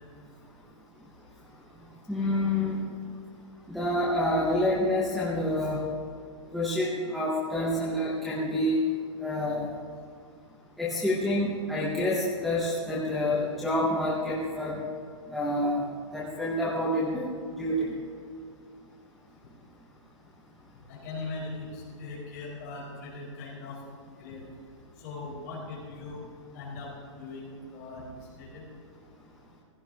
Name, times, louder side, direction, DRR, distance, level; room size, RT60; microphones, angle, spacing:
voice 1, 2.1-2.8 3.7-5.8 6.5-8.9 9.2-9.7 10.8-14.8 15.3-15.8 16.1-17.3 17.6-17.9, left 1 dB, ahead, -8 dB, 0.7 m, -27 dB
voice 2, 20.9-23.8 24.1-24.4 25.0-26.2 26.5-28.6, left 3 dB, 30° left, -5 dB, 4.2 m, -40 dB
17.5 x 16.0 x 2.8 m, 2.2 s
hypercardioid pair, 180°, 16 cm